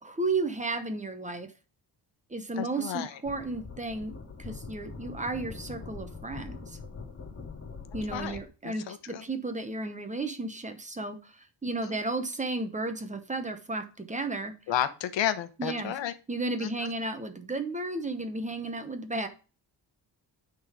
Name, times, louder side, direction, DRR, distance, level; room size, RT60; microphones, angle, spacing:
voice 1, 0.0-1.5 2.3-4.1 4.4-6.8 7.9-14.5 15.6-15.9 16.3-19.3, right 2 dB, 15° right, 0.9 m, -33 dB
voice 2, 2.6-3.2 8.1-8.4 8.6-9.2 11.8-12.0 14.7-16.1 16.6-16.9, left 10 dB, 80° left, 1.0 m, -32 dB
sound 1, 3.2-8.4, left 4 dB, 35° left, 2.3 m, -43 dB
9.5 x 3.9 x 5.0 m
wide cardioid pair, 165°, 44 cm